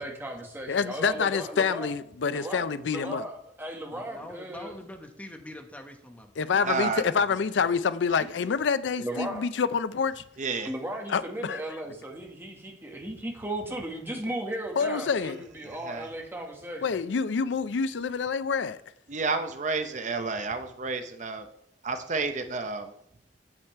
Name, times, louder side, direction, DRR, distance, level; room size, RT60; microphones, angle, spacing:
voice 1, 0.0-1.9 2.3-4.7 9.0-9.4 10.6-16.8, right 1 dB, 15° right, 1.5 m, -36 dB
voice 2, 0.7-3.3 6.4-10.2 11.1-11.7 14.8-15.4 16.8-18.8, left 5 dB, 75° left, 0.4 m, -27 dB
voice 3, 3.9-6.8 7.1-7.8, left 1 dB, 10° left, 1.1 m, -45 dB
voice 4, 6.6-7.0 10.4-10.7 15.6-16.1 19.1-21.5 21.8-22.9, right 4 dB, 45° right, 0.7 m, -30 dB
8.9 x 8.0 x 4.5 m
head